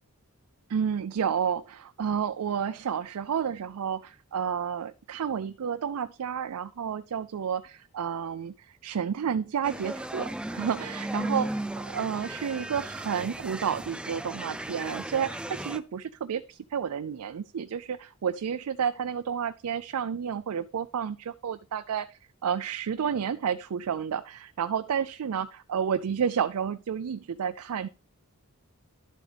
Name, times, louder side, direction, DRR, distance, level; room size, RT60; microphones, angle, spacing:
voice 1, 0.7-11.5 11.9-27.9, right 7 dB, 80° right, 12 dB, 0.4 m, -31 dB
sound 1, 9.6-15.8, right 1 dB, 5° right, 0.4 m, -36 dB
11.5 x 7.2 x 3.4 m, 0.35 s
head